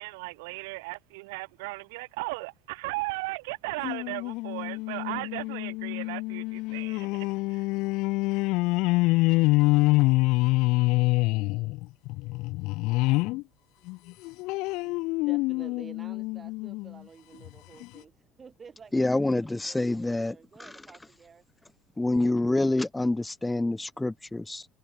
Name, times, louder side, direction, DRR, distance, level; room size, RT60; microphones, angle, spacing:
voice 1, 0.0-7.7, right 25 dB, 90° right, 1.9 m, -36 dB
sound 1, 3.8-13.4 13.9-16.9 17.5-17.6 17.8-17.9, left 23 dB, 50° left, 0.7 m, -26 dB
voice 2, 14.8-21.4, right 6 dB, 15° right, 4.2 m, -51 dB
voice 3, 18.9-20.7 22.0-24.7, left 2 dB, 5° left, 0.4 m, -27 dB
cardioid pair, 180°, 0 cm